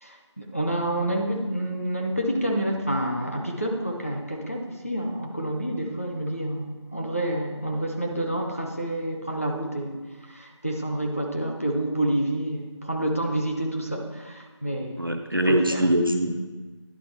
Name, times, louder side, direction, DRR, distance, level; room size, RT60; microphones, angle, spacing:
voice 1, 0.0-10.0 10.3-15.2 15.4-15.8, right 1 dB, 30° left, 1 dB, 0.7 m, -28 dB
voice 2, 15.0-16.4, equal, 45° right, 4 dB, 0.5 m, -23 dB
10.5 x 3.7 x 4.3 m, 1.3 s
figure-of-eight pair, 180°, 16 cm